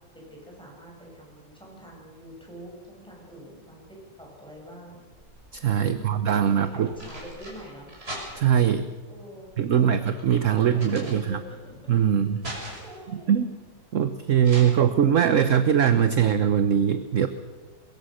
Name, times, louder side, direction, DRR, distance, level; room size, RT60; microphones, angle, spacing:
voice 1, 0.1-5.1 5.9-7.9 9.1-10.1 10.5-11.7 12.8-13.4, equal, ahead, -2 dB, 7.5 m, -45 dB
sound 1, 4.9-5.7 6.6-8.7 9.4-11.6 12.0-13.1 14.4-14.6, right 1 dB, 30° right, 6.5 m, -41 dB
voice 2, 5.5-6.9 8.3-8.9 9.6-11.4 11.9-12.4 13.3-13.5 13.9-17.3, right 8 dB, 55° right, 10 dB, 1.0 m, -21 dB
23.0 x 22.5 x 6.5 m, 1.3 s
omnidirectional pair, 2.0 m